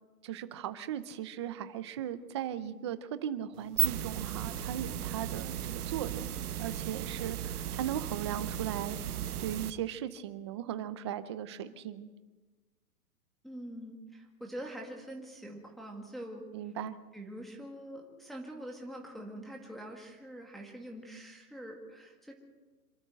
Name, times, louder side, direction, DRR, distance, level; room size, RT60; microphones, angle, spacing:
voice 1, 0.2-6.3 6.6-9.0 9.4-12.1 16.5-17.0, right 10 dB, 20° right, 13 dB, 0.6 m, -37 dB
sound 1, 3.5-9.7, right 10 dB, 70° right, 1.2 m, -35 dB
voice 2, 13.4-16.4 17.1-22.3, right 1 dB, ahead, -1 dB, 2.0 m, -44 dB
26.5 x 12.5 x 7.7 m, 1.3 s
hypercardioid pair, 160°, 47 cm